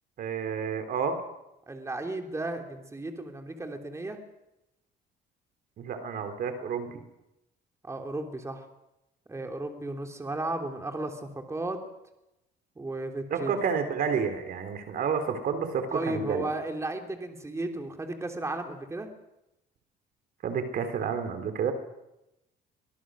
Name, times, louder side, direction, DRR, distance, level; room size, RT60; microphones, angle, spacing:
voice 1, 0.2-1.2 5.8-7.0 13.3-16.4 20.4-21.7, right 6 dB, 60° right, 8 dB, 3.5 m, -30 dB
voice 2, 1.7-4.2 7.8-8.6 9.3-11.8 12.8-13.6 15.9-19.1, right 2 dB, 15° right, 4 dB, 3.1 m, -34 dB
24.5 x 19.5 x 6.4 m, 0.90 s
cardioid pair, 110°, 17 cm